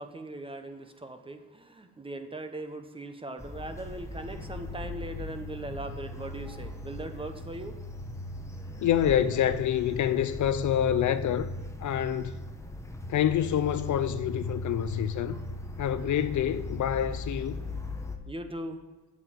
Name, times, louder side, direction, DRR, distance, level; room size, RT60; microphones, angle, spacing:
voice 1, 0.0-7.7 18.3-18.8, right 2 dB, 15° right, 0.9 m, -39 dB
sound 1, 3.4-18.2, left 1 dB, 10° left, 0.9 m, -38 dB
voice 2, 8.8-11.5 11.8-12.3 13.1-15.4 15.8-17.6, left 10 dB, 55° left, 0.6 m, -27 dB
8.0 x 7.0 x 7.7 m
cardioid pair, 120°, 35 cm